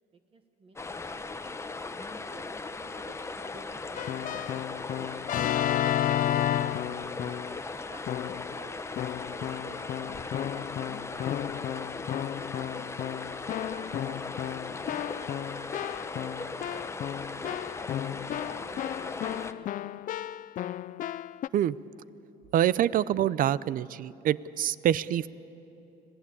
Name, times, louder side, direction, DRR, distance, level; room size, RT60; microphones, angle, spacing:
voice 1, 0.1-0.8 1.0-1.4 2.0-8.0 8.5-8.9 9.3-10.1 10.5-14.6 15.2-20.0 22.4-22.5, right 3 dB, 35° right, 7 dB, 1.2 m, -54 dB
sound 1, 0.8-19.5, left 3 dB, 15° left, 0.8 m, -38 dB
Keyboard (musical), 4.0-7.6 8.1-8.6 9.0-21.5, left 12 dB, 50° left, 0.4 m, -33 dB
voice 2, 22.5-25.3, right 11 dB, 55° right, 19 dB, 0.5 m, -26 dB
26.0 x 17.5 x 8.6 m, 2.9 s
cardioid pair, 110°, 17 cm